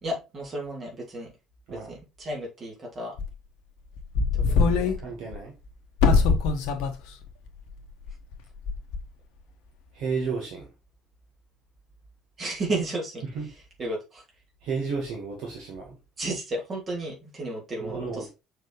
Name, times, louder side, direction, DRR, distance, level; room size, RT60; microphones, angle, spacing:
voice 1, 0.0-1.3 1.7-3.1 4.3-5.1 6.1-6.3 12.4-13.2 13.8-14.2 16.2-18.2, right 2 dB, 35° right, 3.0 m, -33 dB
voice 2, 1.7-2.0 5.0-5.5 9.9-10.7 13.2-13.5 14.6-16.0 17.8-18.3, right 5 dB, 55° right, 1.6 m, -32 dB
sound 1, 3.2-3.3 4.0-5.0 5.3-5.4 6.0-6.9 7.2-7.3 8.1-8.3 8.7-9.0, left 4 dB, 60° left, 0.9 m, -22 dB
6.4 x 4.6 x 3.2 m
figure-of-eight pair, 55°, 0 cm